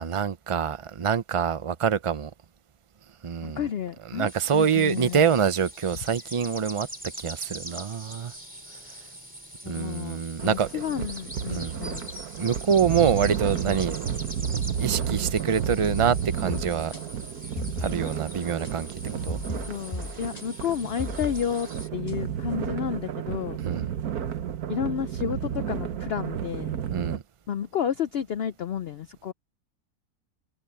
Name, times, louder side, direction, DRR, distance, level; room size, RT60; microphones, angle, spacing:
voice 1, 0.0-2.3 3.2-3.6 4.1-6.9 7.2-8.3 9.7-10.7 11.5-11.8 12.4-14.0 14.8-16.9 17.8-18.9 19.2-19.4 23.6-23.9 26.9-27.2, right 7 dB, 55° right, 0.3 m, -25 dB
voice 2, 3.4-5.3 9.6-12.1 19.7-23.6 24.7-26.8 27.5-29.3, left 8 dB, 60° left, 0.6 m, -31 dB
sound 1, 4.3-21.9, right 1 dB, 5° right, 2.4 m, -43 dB
sound 2, 10.4-27.2, right 8 dB, 80° right, 1.5 m, -32 dB
sound 3, 16.4-22.2, left 1 dB, 25° left, 6.0 m, -38 dB
omnidirectional pair, 1.6 m